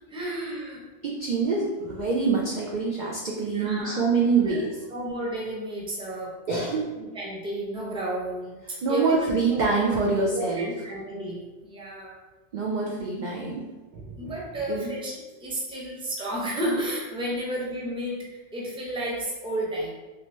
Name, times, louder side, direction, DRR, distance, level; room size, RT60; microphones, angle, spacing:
voice 1, 0.1-0.8 3.3-4.0 4.4-4.6 4.9-6.3 7.0-9.3 9.5-9.9 10.3-12.2 14.2-18.3 18.5-19.9, right 1 dB, 5° right, -4 dB, 0.5 m, -32 dB
voice 2, 1.0-4.9 6.5-6.9 8.8-10.7 12.5-13.6 13.9-14.3 14.7-14.9, right 4 dB, 60° right, -2 dB, 0.5 m, -25 dB
3.3 x 2.9 x 3.0 m, 1.2 s
omnidirectional pair, 1.3 m